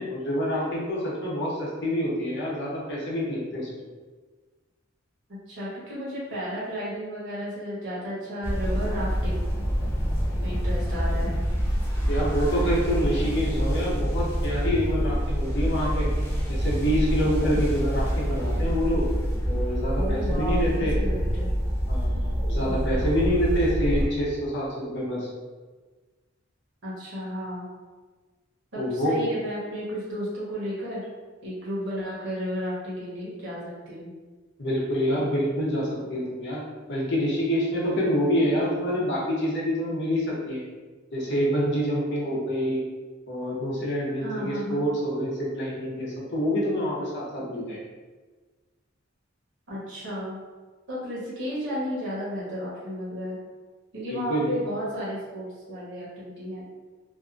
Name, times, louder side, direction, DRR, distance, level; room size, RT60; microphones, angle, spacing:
voice 1, 0.0-3.7 12.1-16.1 16.5-19.1 19.5-20.9 21.9-25.3 28.8-29.1 34.6-36.6 36.9-40.6 41.1-42.8 43.3-47.8 54.1-54.5, equal, 60° left, -5 dB, 0.8 m, -27 dB
voice 2, 5.5-9.6 10.4-11.4 19.9-21.5 26.8-27.7 28.7-31.1 31.4-34.1 44.2-44.9 49.7-50.4 50.9-53.4 53.9-56.6, equal, 65° right, -9 dB, 1.0 m, -33 dB
sound 1, 8.4-24.1, equal, 10° left, 0.4 m, -26 dB
2.6 x 2.4 x 2.5 m, 1.4 s
head